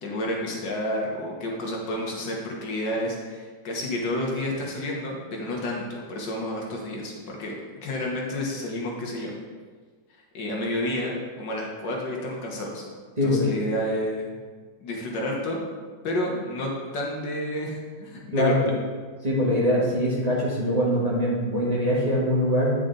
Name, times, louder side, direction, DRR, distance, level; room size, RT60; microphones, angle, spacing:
voice 1, 0.0-9.4 10.3-12.8 13.2-14.4 14.8-15.6 16.0-18.6, left 1 dB, 70° left, -1 dB, 1.9 m, -30 dB
voice 2, 13.2-13.5 18.3-18.7 19.2-22.7, equal, 20° right, -7 dB, 1.5 m, -23 dB
9.4 x 5.1 x 3.8 m, 1.5 s
omnidirectional pair, 2.0 m